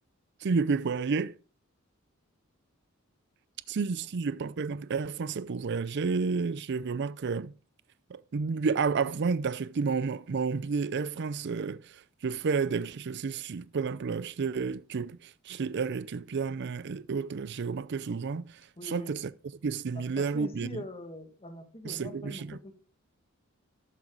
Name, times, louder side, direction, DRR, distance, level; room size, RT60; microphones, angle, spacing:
voice 1, 0.4-1.3 3.7-7.5 8.1-19.3 19.6-20.8 21.8-22.6, right 5 dB, 55° right, 0.5 m, -31 dB
voice 2, 18.8-19.1 19.9-22.7, left 1 dB, 30° left, 2.0 m, -43 dB
12.0 x 9.0 x 3.9 m
head